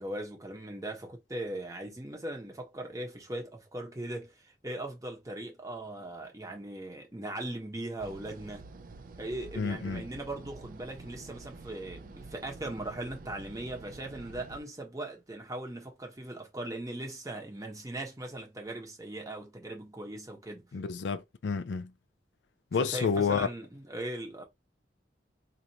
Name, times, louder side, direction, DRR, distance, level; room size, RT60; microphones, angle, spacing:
voice 1, 0.0-8.7 9.2-20.7 22.8-24.4, right 1 dB, 20° right, 1.0 m, -39 dB
sound 1, 8.0-14.6, right 3 dB, 50° right, 0.4 m, -48 dB
voice 2, 9.6-10.1 20.7-21.9 22.7-23.5, left 5 dB, 75° left, 0.4 m, -30 dB
4.0 x 2.5 x 2.8 m
head